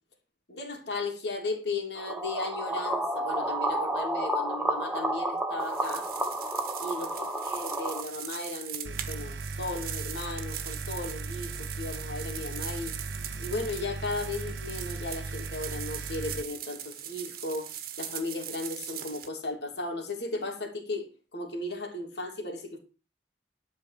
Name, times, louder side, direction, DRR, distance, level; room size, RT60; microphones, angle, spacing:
voice 1, 0.5-6.1 6.8-12.9 13.4-17.7 18.0-22.8, left 2 dB, 70° left, 3.1 m, -36 dB
sound 1, 2.0-8.0, right 1 dB, 5° right, 1.3 m, -31 dB
sound 2, 5.6-19.3, right 10 dB, 55° right, 1.3 m, -41 dB
sound 3, 8.8-16.4, right 3 dB, 85° right, 0.7 m, -38 dB
12.0 x 4.8 x 7.6 m
head